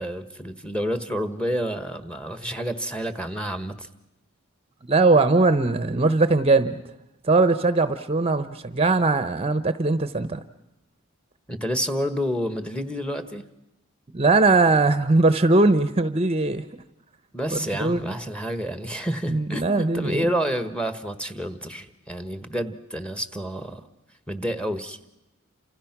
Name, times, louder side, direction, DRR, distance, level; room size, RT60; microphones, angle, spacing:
voice 1, 0.0-3.9 11.5-13.4 17.3-23.8 24.3-25.0, equal, 5° left, 10 dB, 1.4 m, -29 dB
voice 2, 4.9-6.8 7.2-10.4 14.1-16.6 17.5-18.1 19.3-20.2, right 3 dB, 30° right, 12 dB, 0.9 m, -20 dB
29.0 x 27.5 x 6.0 m, 0.92 s
head